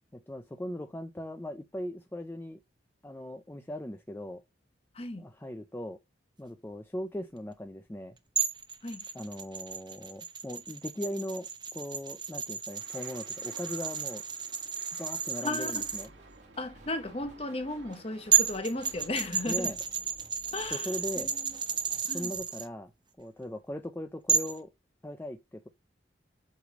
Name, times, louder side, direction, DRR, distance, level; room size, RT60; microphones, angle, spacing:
voice 1, 0.1-2.6 3.0-4.4 5.2-6.0 6.4-8.2 9.1-14.2 15.0-16.1 19.5-19.8 20.7-21.3 22.0-22.9 23.2-24.7 25.0-25.7, left 1 dB, 10° left, 0.4 m, -39 dB
voice 2, 4.9-5.3 8.8-9.0 15.4-15.9 16.6-19.7 20.5-20.9 21.2-21.5 22.1-22.3, left 2 dB, 30° left, 0.9 m, -35 dB
sound 1, 8.4-16.1 17.9-18.0 18.3-22.7 24.3-24.6, right 7 dB, 25° right, 0.7 m, -32 dB
sound 2, 12.7-19.4, right 3 dB, 80° right, 1.8 m, -56 dB
sound 3, 15.6-22.4, right 1 dB, 40° right, 1.3 m, -55 dB
8.0 x 3.3 x 5.0 m
head